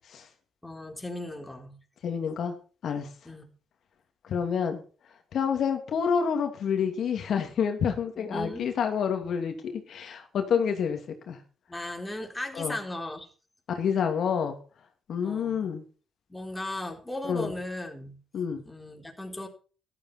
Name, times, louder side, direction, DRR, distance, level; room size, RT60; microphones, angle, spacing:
voice 1, 0.6-1.7 3.2-3.5 8.2-8.7 11.7-13.3 15.2-15.6 16.3-18.2 18.7-19.5, left 1 dB, 10° left, 3 dB, 4.0 m, -36 dB
voice 2, 2.0-2.5 2.8-3.1 4.3-4.8 5.3-11.0 11.3-11.4 12.6-12.8 13.7-14.6 15.1-15.8 17.2-17.5 18.3-18.6, left 7 dB, 65° left, 5 dB, 2.6 m, -28 dB
14.0 x 12.5 x 4.4 m, 0.37 s
cardioid pair, 90°, 0 cm